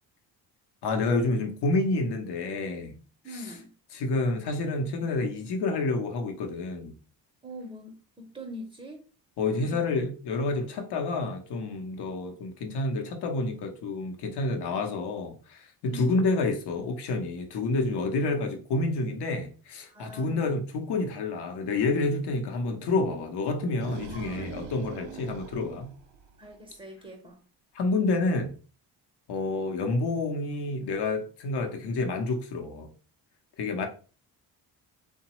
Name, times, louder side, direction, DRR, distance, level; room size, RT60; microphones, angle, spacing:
voice 1, 0.8-3.0 3.3-3.5 3.9-6.9 9.4-25.9 27.7-28.6 29.3-32.9 33.6-33.9, left 3 dB, 60° left, 0.9 m, -29 dB
voice 2, 3.2-3.7 7.4-9.0 9.5-9.9 15.9-16.1 19.9-20.5 24.0-24.5 26.4-27.4, equal, 15° right, 0.7 m, -43 dB
sound 1, 23.5-26.7, right 7 dB, 70° right, 0.5 m, -42 dB
2.9 x 2.2 x 2.9 m
supercardioid pair, 70°, 44 cm